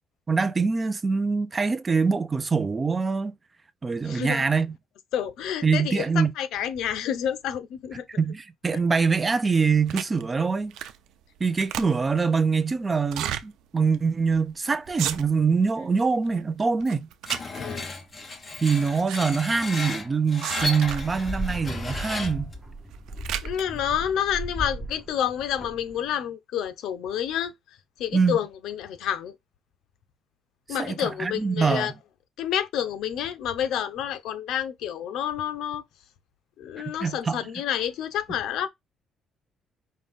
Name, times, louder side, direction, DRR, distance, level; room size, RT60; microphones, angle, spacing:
voice 1, 0.3-3.3 3.8-4.7 5.6-6.3 8.2-10.7 11.4-17.1 18.6-22.5 28.1-28.4 30.8-31.9 37.0-37.4, right 5 dB, 25° right, 0.5 m, -24 dB
voice 2, 4.0-4.5 5.1-8.1 17.5-17.9 23.4-27.5 28.0-29.3 30.7-31.9 32.4-35.8 36.6-38.7, left 9 dB, 80° left, 0.7 m, -29 dB
sound 1, 9.9-10.2 10.7-11.1 11.4-12.2 13.0-13.4 13.9-14.0 14.3-14.5 14.9-15.5 15.9-16.4 16.8-17.8 18.6-19.2 19.5-19.6 20.4-21.2 22.0-22.4 22.8-23.6, right 11 dB, 85° right, 0.6 m, -33 dB
Screech, 17.3-22.5, left 2 dB, 25° left, 1.2 m, -34 dB
sound 2, 20.8-26.1, right 1 dB, 5° right, 1.4 m, -36 dB
5.3 x 2.6 x 3.5 m
cardioid pair, 135°, 0 cm